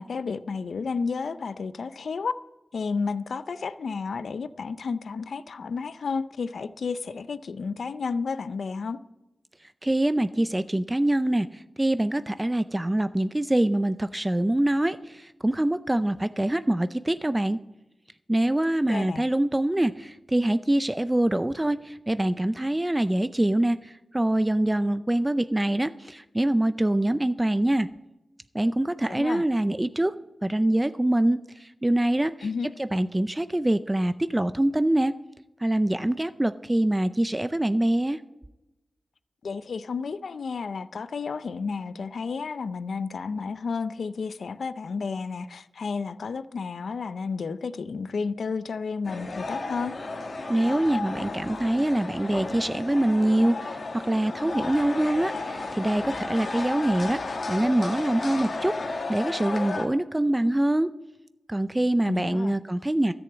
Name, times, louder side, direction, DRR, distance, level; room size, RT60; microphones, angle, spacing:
voice 1, 0.0-2.3 2.7-9.0 18.9-19.2 29.1-29.4 32.4-32.7 39.4-49.9 62.0-62.6, left 5 dB, 80° left, 0.5 m, -31 dB
voice 2, 9.8-17.6 18.3-27.9 28.5-30.1 30.4-32.5 32.8-35.1 35.6-38.2 50.5-60.9 61.5-63.1, right 1 dB, 15° right, 0.4 m, -24 dB
sound 1, 49.0-59.9, left 3 dB, 60° left, 2.0 m, -33 dB
13.5 x 7.0 x 8.0 m
wide cardioid pair, 85°, 0 cm